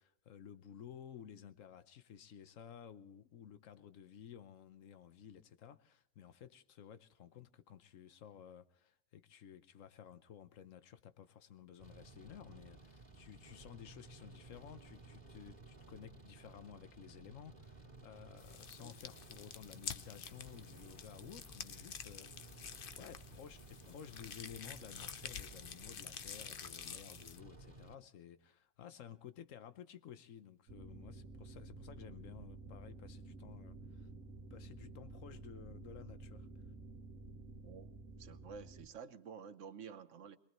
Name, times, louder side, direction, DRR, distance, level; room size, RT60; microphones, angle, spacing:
voice 1, 0.0-22.6 22.9-34.1 34.5-36.5, left 9 dB, 85° left, 1.2 m, -54 dB
sound 1, 11.8-28.0, right 3 dB, 35° right, 3.0 m, -57 dB
sound 2, 18.4-27.4, left 7 dB, 50° left, 0.9 m, -49 dB
sound 3, 30.7-38.9, right 3 dB, 90° right, 1.5 m, -52 dB
voice 2, 38.2-40.4, right 6 dB, 75° right, 1.2 m, -51 dB
22.5 x 21.0 x 3.0 m
omnidirectional pair, 1.3 m